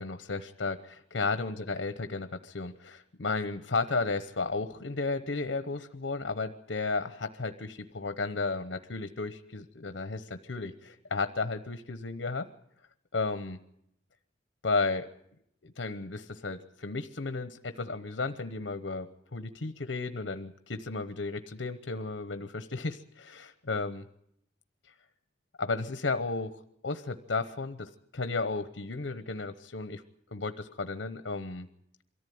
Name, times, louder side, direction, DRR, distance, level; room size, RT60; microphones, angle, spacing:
voice 1, 0.0-12.5 13.1-13.6 14.6-15.1 15.6-24.0 24.8-24.9 25.6-30.0 30.3-31.7, left 3 dB, 80° left, 11 dB, 0.9 m, -33 dB
23.0 x 14.5 x 9.4 m, 0.76 s
head